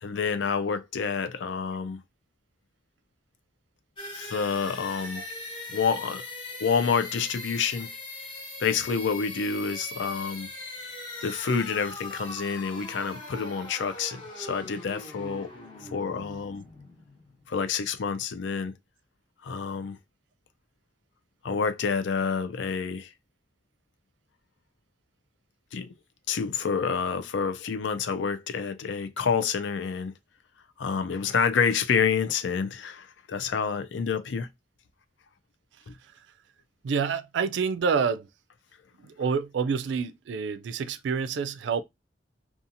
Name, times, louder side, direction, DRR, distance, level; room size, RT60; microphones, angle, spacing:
voice 1, 0.0-2.0 4.1-5.2 5.7-6.3 6.6-7.9 8.6-10.5 11.2-15.5 15.8-16.6 17.5-18.7 19.4-20.0 21.4-23.1 25.7-25.9 26.3-30.1 30.8-34.5 35.9-36.0, left 6 dB, 80° left, 0.4 m, -28 dB
sound 1, 4.0-17.7, left 2 dB, 30° left, 1.0 m, -40 dB
voice 2, 36.8-38.3 39.0-41.8, right 5 dB, 75° right, 0.3 m, -28 dB
2.7 x 2.3 x 2.5 m
head